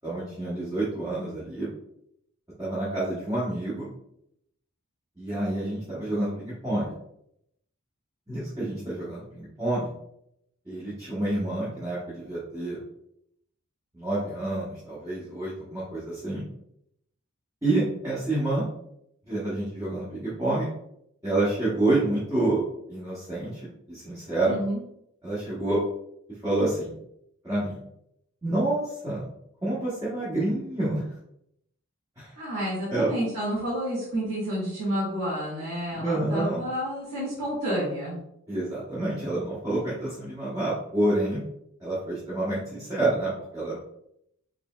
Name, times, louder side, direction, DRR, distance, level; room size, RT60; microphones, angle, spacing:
voice 1, 0.0-1.7 2.6-3.9 5.2-6.9 8.3-9.9 10.7-12.8 13.9-16.4 17.6-18.7 19.3-20.7 21.2-22.6 22.9-23.6 23.9-24.6 25.2-25.8 26.4-26.9 27.4-27.8 28.4-29.2 29.6-31.0 32.2-32.3 32.9-33.1 35.9-36.6 38.5-41.4 41.8-43.8, right 2 dB, 15° right, -10 dB, 1.0 m, -28 dB
voice 2, 24.4-24.8 32.4-38.2, equal, 85° right, -8 dB, 1.6 m, -30 dB
5.0 x 3.3 x 2.3 m, 0.76 s
head